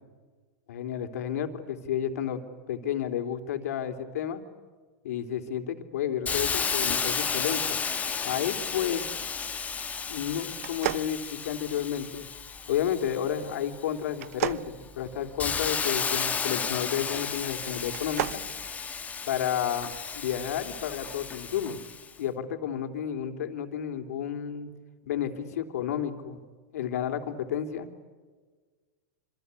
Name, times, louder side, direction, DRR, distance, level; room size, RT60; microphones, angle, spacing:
voice 1, 0.7-2.4 2.7-4.4 5.0-7.8 8.2-9.0 10.1-12.3 12.7-18.4 19.3-21.8 22.2-24.7 25.1-26.4 26.7-27.9, left 9 dB, 75° left, 5 dB, 3.3 m, -31 dB
Hiss, 6.3-13.8 14.3-22.1, left 6 dB, 20° left, 1.8 m, -33 dB
sound 1, 10.6-12.0 14.1-15.7 17.8-18.5, right 13 dB, 70° right, 0.9 m, -33 dB
27.0 x 26.5 x 8.4 m, 1.5 s
hypercardioid pair, 115°, 8 cm